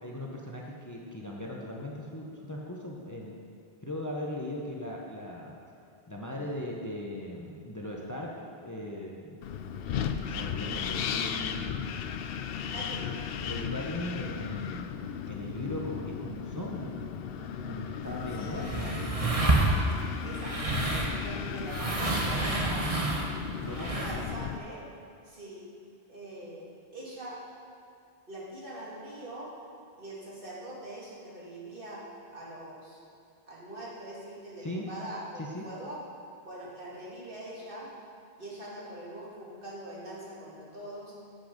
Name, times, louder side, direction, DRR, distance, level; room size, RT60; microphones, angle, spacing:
voice 1, 0.0-3.4 3.8-5.6 6.1-8.3 8.6-9.4 10.1-11.8 13.4-15.0 15.3-17.1 17.7-19.0 23.6-23.9 34.6-34.8 35.4-35.6, left 1 dB, 20° left, -2 dB, 0.9 m, -38 dB
Wind, 9.4-24.6, left 7 dB, 70° left, 0.7 m, -36 dB
voice 2, 12.7-13.2 18.3-19.3 20.2-20.8 21.2-23.1 23.6-24.8 25.2-25.7 26.1-26.7 26.9-27.4 28.3-29.5 30.0-32.0 32.3-33.0 33.5-36.0 36.4-37.9 38.4-41.1, right 1 dB, 60° right, -6 dB, 2.3 m, -43 dB
sound 1, 18.0-24.3, right 2 dB, 35° right, 1.2 m, -29 dB
13.0 x 6.1 x 5.1 m, 2.5 s
omnidirectional pair, 1.1 m